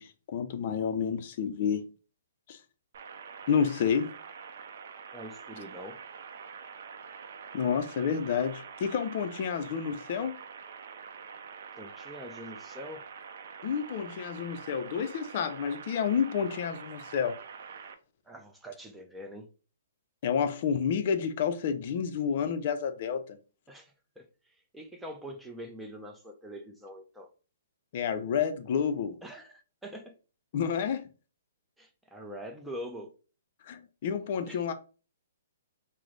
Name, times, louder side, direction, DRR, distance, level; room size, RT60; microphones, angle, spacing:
voice 1, 0.0-1.9 2.5-2.6 3.5-4.1 7.5-10.3 13.6-17.3 20.2-23.4 27.9-29.2 30.5-31.1 33.6-34.7, left 7 dB, 50° left, 0.4 m, -29 dB
sound 1, 2.9-17.9, right 6 dB, 60° right, 0.5 m, -46 dB
voice 2, 5.1-6.0 11.8-13.0 18.3-19.5 23.7-24.3 24.7-27.3 29.2-30.1 31.8-33.1 34.5-34.6, equal, 5° right, 0.5 m, -44 dB
3.0 x 2.0 x 3.7 m
hypercardioid pair, 140°, 0 cm